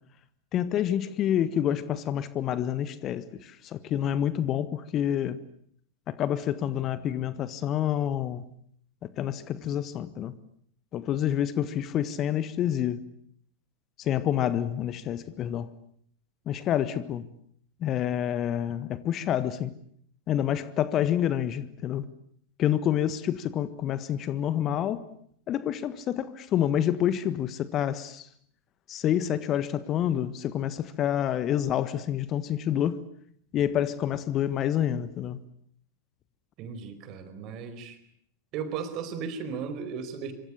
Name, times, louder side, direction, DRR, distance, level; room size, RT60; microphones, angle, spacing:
voice 1, 0.5-5.4 6.1-8.4 9.0-10.3 10.9-13.0 14.0-15.7 16.5-17.2 17.8-19.7 20.3-22.1 22.6-25.1 25.5-28.3 28.9-33.1 33.5-35.4, left 10 dB, 30° left, 1.5 m, -28 dB
voice 2, 36.6-38.0 38.5-40.3, right 6 dB, 40° right, 4.8 m, -35 dB
26.5 x 25.5 x 8.5 m
figure-of-eight pair, 90°, 0 cm